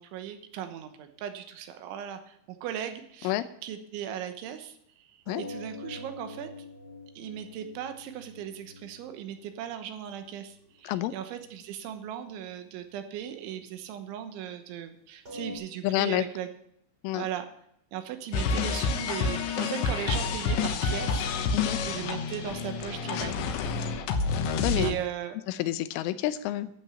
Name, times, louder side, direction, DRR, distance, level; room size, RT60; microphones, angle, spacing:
voice 1, 0.0-6.5 7.2-16.5 17.1-17.5 17.9-21.5 21.8-23.6 24.8-25.4, right 10 dB, 80° right, 8 dB, 3.4 m, -38 dB
sound 1, 5.2-9.5 9.8-10.3 10.7-10.9 11.5-11.6 15.2-15.6, left 2 dB, 25° right, 1.7 m, -44 dB
voice 2, 15.8-16.2 17.0-17.3 21.5-21.8 24.6-25.0 25.5-26.7, left 14 dB, 90° left, 13 dB, 3.3 m, -28 dB
sound 2, 18.3-24.9, left 4 dB, 75° left, 3.1 m, -29 dB
12.5 x 8.0 x 7.2 m, 0.71 s
omnidirectional pair, 5.6 m